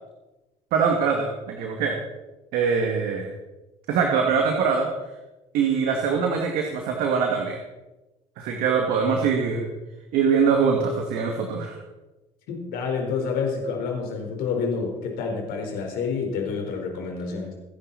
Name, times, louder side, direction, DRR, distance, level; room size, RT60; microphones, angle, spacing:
voice 1, 0.7-2.0 2.5-3.3 3.9-4.9 5.5-7.6 8.4-9.7 10.1-11.8, right 6 dB, 65° right, 2 dB, 2.3 m, -23 dB
voice 2, 12.5-17.5, left 5 dB, 65° left, 2 dB, 4.4 m, -28 dB
24.0 x 10.5 x 4.3 m, 1.1 s
hypercardioid pair, 60°, 16 cm